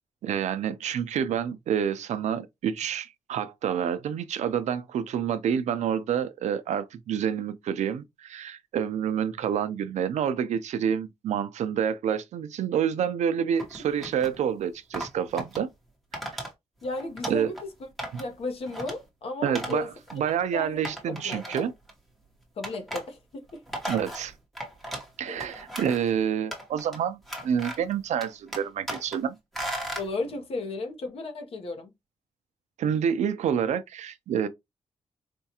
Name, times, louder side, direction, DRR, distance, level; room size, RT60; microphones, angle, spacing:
voice 1, 0.2-15.7 16.3-16.4 17.3-17.5 18.1-18.2 19.4-21.7 23.8-24.3 25.2-29.4 32.8-34.5, right 8 dB, 90° right, 0.5 m, -28 dB
sound 1, 13.6-14.4 14.9-15.6 16.1-16.5 16.8-17.6 18.0-18.3 18.7-19.0 19.6-19.8 20.1-20.2 20.8-21.9 22.6-23.1 23.5-25.1 25.4-26.1 26.5-27.0 27.3-27.9 28.2-29.2 29.5-30.1, right 1 dB, ahead, 1.0 m, -36 dB
voice 2, 16.8-17.6 18.1-19.9 20.5-20.8 21.1-21.4 22.6-23.6 25.2-25.5 30.0-31.9, left 2 dB, 55° left, 0.9 m, -34 dB
4.3 x 2.3 x 2.8 m
wide cardioid pair, 175°, 12 cm